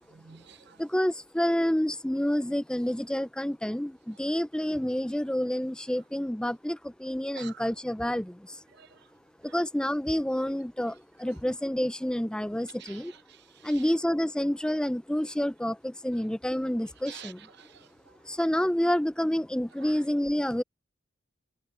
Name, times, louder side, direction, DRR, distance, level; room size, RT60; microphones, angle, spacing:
voice 1, 0.1-0.8 7.4-7.7 8.7-9.0 9.5-9.6 12.8-13.9 17.1-18.1 19.8-20.0, right 9 dB, 60° right, 0.8 m, -49 dB
voice 2, 0.8-8.6 9.4-13.1 13.6-17.5 18.2-20.6, equal, 5° left, 0.5 m, -28 dB
head